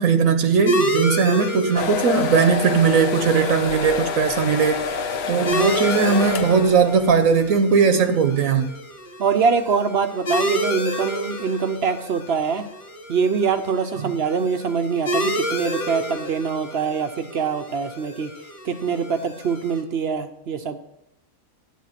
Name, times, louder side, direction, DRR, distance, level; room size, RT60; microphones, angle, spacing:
voice 1, 0.0-8.8 14.0-14.1, right 6 dB, 70° right, 1.2 m, -19 dB
sound 1, 0.7-19.8, equal, 80° left, 2.1 m, -30 dB
sound 2, 1.7-7.3, left 6 dB, 55° left, 0.8 m, -27 dB
voice 2, 9.2-12.7 13.1-18.3 18.6-20.8, right 5 dB, 55° right, 0.8 m, -24 dB
10.5 x 8.5 x 5.8 m
omnidirectional pair, 1.5 m